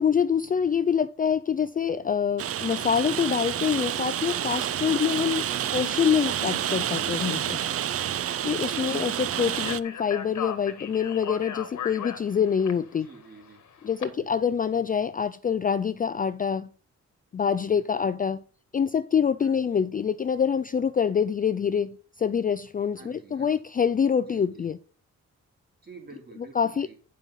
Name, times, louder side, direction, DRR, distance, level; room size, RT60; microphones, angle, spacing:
voice 1, 0.0-7.6 8.4-13.1 13.8-16.7 17.3-18.4 18.7-24.8 26.6-26.9, left 7 dB, 30° left, 0.4 m, -25 dB
Rain, 2.4-9.8, right 10 dB, 50° right, 0.4 m, -29 dB
voice 2, 8.6-9.0 12.9-13.7 14.1-14.3 17.7-18.2 19.4-19.7 22.9-23.6 24.2-24.7 25.8-26.9, right 4 dB, 35° right, 3.5 m, -49 dB
Speech, 9.5-14.1, left 8 dB, 75° left, 1.6 m, -37 dB
9.2 x 5.4 x 5.6 m
wide cardioid pair, 130°, 29 cm